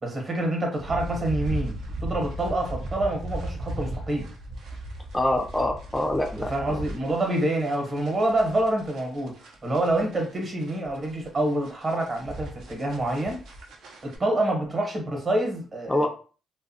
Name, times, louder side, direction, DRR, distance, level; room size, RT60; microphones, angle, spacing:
voice 1, 0.0-4.3 6.4-13.4 14.0-16.1, right 1 dB, 40° right, 2 dB, 1.0 m, -27 dB
sound 1, 0.8-14.2, right 1 dB, 75° right, 0.6 m, -37 dB
voice 2, 5.1-6.5 15.9-16.1, left 1 dB, 10° left, 1 dB, 0.4 m, -25 dB
2.7 x 2.3 x 2.6 m, 0.37 s
cardioid pair, 90°, 0 cm